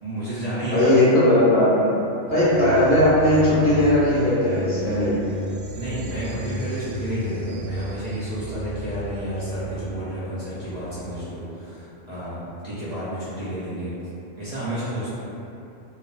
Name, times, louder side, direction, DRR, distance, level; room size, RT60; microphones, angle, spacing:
voice 1, 0.0-1.0 5.7-13.9 14.4-15.1, equal, 50° right, -12 dB, 0.4 m, -31 dB
voice 2, 0.7-1.9 2.3-5.2, left 1 dB, 60° left, -11 dB, 0.8 m, -18 dB
sound 1, 2.3-11.4, right 1 dB, 75° right, 0.9 m, -34 dB
2.4 x 2.1 x 2.4 m, 2.8 s
omnidirectional pair, 1.3 m